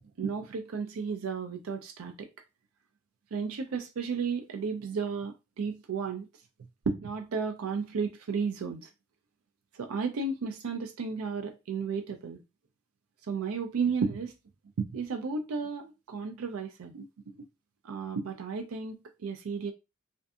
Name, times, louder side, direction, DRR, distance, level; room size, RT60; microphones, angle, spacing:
voice 1, 0.2-2.3 3.3-6.3 6.9-8.9 9.8-12.4 13.3-14.3 14.8-17.1 17.8-19.7, right 5 dB, 85° right, 0.4 m, -33 dB
2.5 x 2.5 x 2.3 m
head